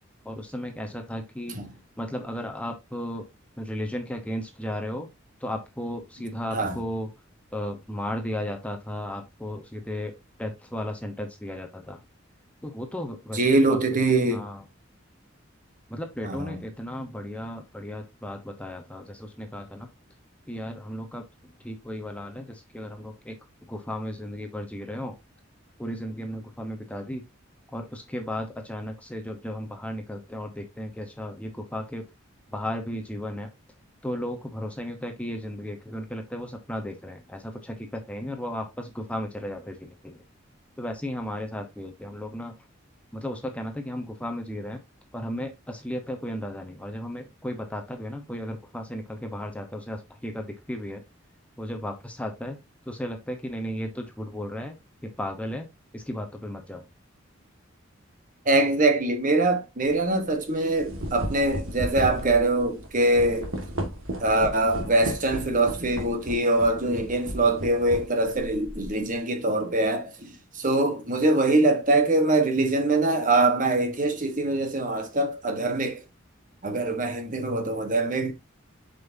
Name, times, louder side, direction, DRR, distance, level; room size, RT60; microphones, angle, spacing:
voice 1, 0.2-1.6 2.0-3.3 3.6-5.1 5.4-7.1 7.5-10.1 10.4-12.0 12.6-13.4 13.7-14.0 14.3-14.6 15.9-19.9 20.5-21.2 21.6-23.3 23.7-25.1 25.8-27.2 27.7-32.0 32.5-33.5 34.0-40.2 40.8-42.5 43.1-44.8 45.1-51.0 51.6-52.6 52.9-54.8 55.0-55.6 55.9-56.8, left 1 dB, 5° left, 1.0 m, -34 dB
voice 2, 13.3-14.4 16.2-16.6 58.4-63.5 64.2-70.3 70.6-76.0 76.6-78.3, right 2 dB, 40° right, 1.3 m, -23 dB
sound 1, 59.9-60.1 60.6-69.0, equal, 85° right, 1.9 m, -35 dB
7.5 x 5.4 x 2.8 m
head